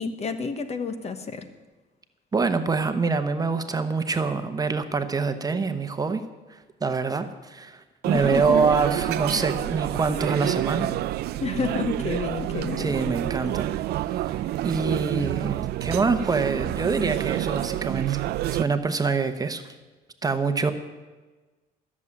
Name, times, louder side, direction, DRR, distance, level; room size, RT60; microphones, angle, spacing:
voice 1, 0.0-1.5 8.1-8.6 11.4-13.0, left 5 dB, 40° left, 10 dB, 1.2 m, -29 dB
voice 2, 2.3-6.2 6.5-10.9 12.8-13.7 14.6-18.2 18.5-19.7 20.2-20.7, right 4 dB, 20° right, 8 dB, 1.0 m, -25 dB
sound 1, 8.0-18.6, right 14 dB, 70° right, 0.6 m, -28 dB
14.0 x 7.3 x 9.7 m, 1.3 s
cardioid pair, 110°, 17 cm